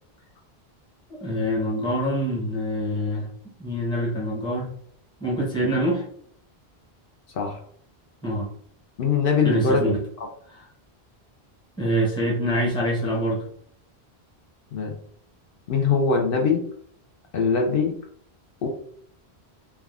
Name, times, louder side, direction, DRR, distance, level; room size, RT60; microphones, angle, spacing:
voice 1, 1.1-3.3 3.6-4.7 5.2-6.0 8.2-8.5 9.4-10.0 10.5-10.6 11.8-13.4, equal, 5° left, -3 dB, 0.6 m, -25 dB
voice 2, 9.0-10.3 14.7-14.9 15.7-16.6 17.3-17.9 18.6-18.7, left 5 dB, 65° left, 1 dB, 0.7 m, -22 dB
3.4 x 2.2 x 2.3 m, 0.62 s
omnidirectional pair, 1.1 m